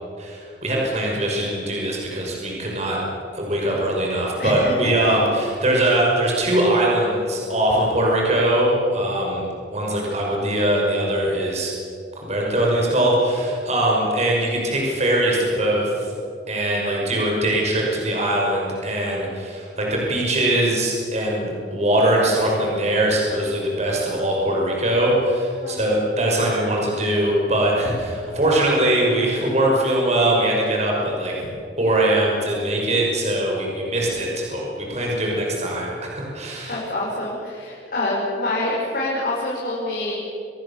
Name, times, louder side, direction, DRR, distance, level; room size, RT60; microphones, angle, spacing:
voice 1, 0.2-3.0 3.3-9.4 9.7-11.7 12.2-16.1 16.5-31.3 31.8-36.8, right 1 dB, 40° right, -2 dB, 6.1 m, -21 dB
voice 2, 4.4-4.8 5.0-5.1 25.6-25.8 36.7-40.2, left 2 dB, 55° left, -6 dB, 5.9 m, -26 dB
27.0 x 21.0 x 7.5 m, 2.6 s
head